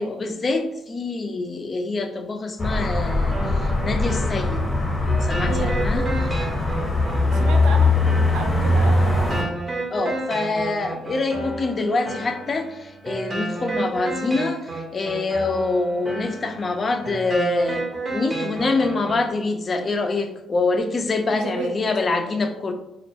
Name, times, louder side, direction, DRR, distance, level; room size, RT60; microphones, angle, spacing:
voice 1, 0.0-4.6 5.2-6.3 9.9-17.8 18.1-22.7, left 3 dB, 40° left, 6 dB, 0.3 m, -25 dB
sound 1, 2.6-9.4, left 2 dB, 20° left, 0.7 m, -21 dB
sound 2, 3.3-19.3, right 2 dB, 30° right, 0.6 m, -32 dB
voice 2, 5.4-5.8 7.3-7.9 8.3-9.4 21.3-21.7, right 4 dB, 85° right, 4 dB, 0.4 m, -31 dB
2.2 x 2.2 x 2.6 m, 0.86 s
cardioid pair, 90°, 0 cm